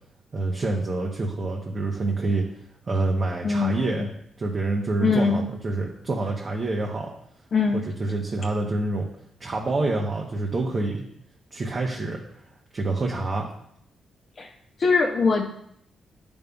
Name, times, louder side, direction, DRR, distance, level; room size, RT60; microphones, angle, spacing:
voice 1, 0.3-2.4 2.9-4.1 4.4-7.1 7.7-9.1 9.4-11.0 11.5-12.2 12.7-13.5, right 2 dB, 35° right, -1 dB, 0.7 m, -27 dB
voice 2, 3.4-4.1 5.0-5.5 7.5-7.8 14.4-14.5 14.8-15.6, left 4 dB, 45° left, 2 dB, 0.6 m, -22 dB
9.5 x 5.2 x 2.3 m, 0.72 s
cardioid pair, 130°, 0 cm